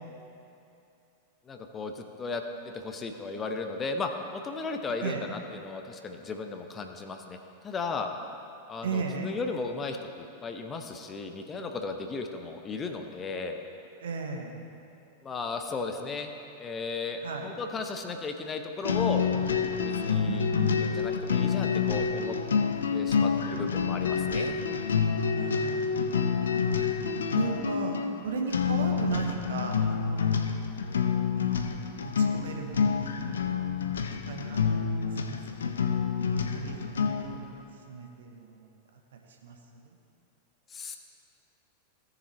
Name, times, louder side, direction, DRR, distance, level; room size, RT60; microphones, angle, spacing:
voice 1, 1.5-2.4 2.7-7.4 7.6-8.1 8.7-13.6 15.2-16.3 16.6-19.2 19.8-20.5 20.8-22.4 22.9-24.6 40.7-41.0, left 4 dB, 20° left, 5 dB, 0.7 m, -35 dB
voice 2, 8.8-9.3 14.0-14.5 17.2-17.5 20.2-20.8 25.3-25.9 26.1-26.5 27.3-27.9 28.2-30.4 31.3-31.6 32.0-32.9 33.9-34.6 35.3-35.7 36.5-37.6 37.9-38.7 39.4-39.5 39.8-39.9, right 5 dB, 65° right, 2 dB, 1.2 m, -36 dB
sound 1, 18.8-37.4, left 6 dB, 70° left, 0.6 m, -28 dB
17.0 x 6.8 x 3.2 m, 2.7 s
figure-of-eight pair, 90°, 0 cm